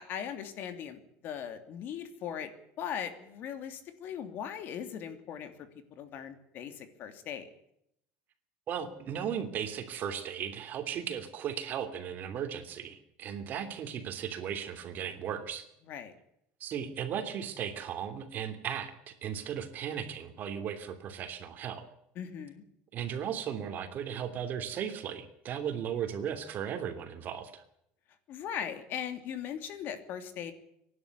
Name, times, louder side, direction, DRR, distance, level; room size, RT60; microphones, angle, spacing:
voice 1, 0.0-2.5 2.8-7.5 15.9-16.1 22.1-22.6 28.3-30.5, left 8 dB, 50° left, 9 dB, 3.0 m, -39 dB
voice 2, 8.7-15.6 16.6-21.9 22.9-27.6, right 8 dB, 45° right, 8 dB, 3.1 m, -36 dB
24.5 x 11.5 x 9.7 m, 0.76 s
cardioid pair, 140°, 4 cm